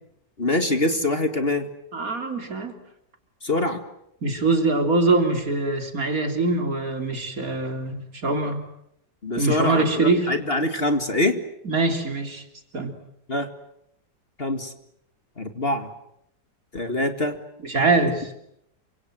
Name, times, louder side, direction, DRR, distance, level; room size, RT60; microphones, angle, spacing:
voice 1, 0.4-1.7 3.4-3.8 9.2-11.4 13.3-13.5 14.4-14.7 15.4-15.9 16.7-17.4, left 2 dB, 35° left, 7 dB, 2.2 m, -24 dB
voice 2, 1.9-2.7 4.2-8.6 9.4-10.3 11.7-12.4 12.7-12.9 17.6-18.3, right 3 dB, 50° right, 5 dB, 3.7 m, -23 dB
28.5 x 25.5 x 7.8 m, 0.77 s
omnidirectional pair, 1.9 m